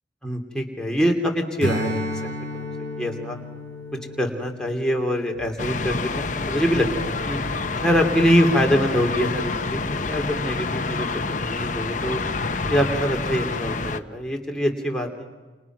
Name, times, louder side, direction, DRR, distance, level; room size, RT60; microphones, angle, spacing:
voice 1, 0.2-2.6 3.0-3.4 4.2-7.4 7.8-12.2 12.7-15.3, equal, 5° left, 1 dB, 3.0 m, -24 dB
Strum, 1.6-6.4, left 1 dB, 65° right, 7.6 m, -32 dB
sound 1, 5.6-14.0, left 3 dB, 40° left, 1.0 m, -28 dB
29.5 x 29.0 x 6.2 m, 1.3 s
head